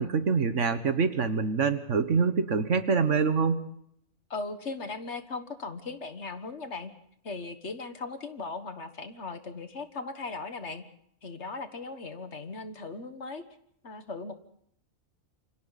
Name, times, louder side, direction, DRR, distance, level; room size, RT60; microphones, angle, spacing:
voice 1, 0.0-3.7, right 5 dB, 60° right, 11 dB, 1.6 m, -25 dB
voice 2, 4.3-6.9 7.2-10.8 11.2-13.4 13.8-14.4, left 3 dB, 55° left, 9 dB, 1.8 m, -38 dB
28.0 x 25.0 x 4.1 m, 0.67 s
omnidirectional pair, 1.4 m